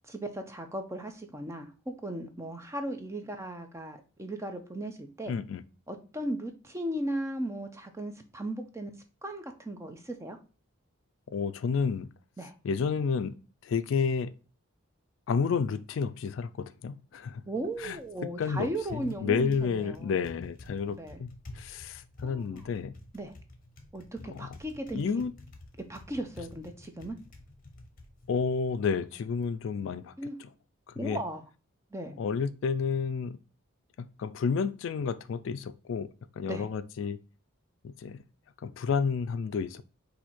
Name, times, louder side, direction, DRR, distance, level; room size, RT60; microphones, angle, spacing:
voice 1, 0.1-5.4 5.9-8.9 9.2-10.4 12.4-12.5 17.5-20.2 20.9-21.2 22.2-22.7 23.1-23.3 23.9-25.0 25.9-27.2 30.2-30.3 31.0-31.4 31.9-32.2 36.5-36.7, right 1 dB, 15° right, 0.5 m, -37 dB
voice 2, 5.3-5.6 11.3-12.1 12.6-13.4 13.6-14.3 15.3-17.4 17.8-18.0 18.4-22.9 24.3-24.5 24.9-25.3 28.3-30.1 31.0-31.2 32.2-33.4 34.0-36.1 36.4-37.2 37.8-38.2 38.6-39.8, left 5 dB, 60° left, 0.3 m, -30 dB
Typing, 17.2-29.6, left 2 dB, 40° left, 0.9 m, -51 dB
4.4 x 2.7 x 4.2 m
head